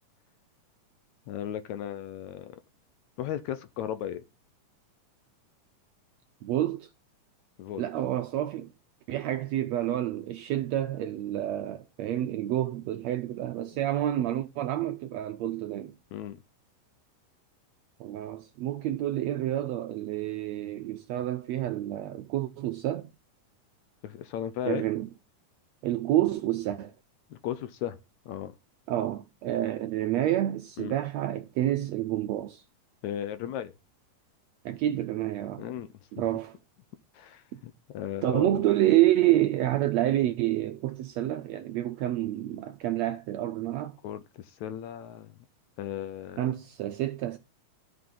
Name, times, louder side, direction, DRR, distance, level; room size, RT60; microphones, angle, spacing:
voice 1, 1.3-2.6 3.2-4.2 7.6-7.8 16.1-16.4 24.0-24.9 27.3-28.0 28.3-28.6 30.8-31.0 33.0-33.7 35.6-35.9 37.1-38.6 44.0-45.3 45.8-46.5, left 10 dB, 75° left, 1.8 m, -36 dB
voice 2, 6.4-6.9 7.8-8.7 9.1-15.9 18.0-23.1 24.6-25.1 25.8-26.9 28.9-32.6 34.6-35.7 36.1-36.6 37.5-37.6 38.2-44.0 46.4-47.4, right 13 dB, 80° right, 1.6 m, -28 dB
13.0 x 5.9 x 3.7 m
omnidirectional pair, 3.7 m